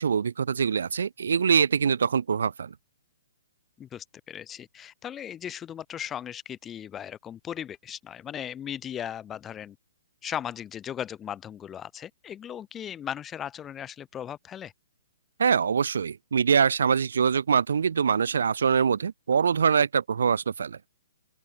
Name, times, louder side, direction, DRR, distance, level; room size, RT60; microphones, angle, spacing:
voice 1, 0.0-2.7 15.4-20.8, right 6 dB, 75° right, 0.7 m, -24 dB
voice 2, 3.8-9.8 10.2-14.7, left 9 dB, 15° left, 3.8 m, -37 dB
open air
hypercardioid pair, 165°, 0 cm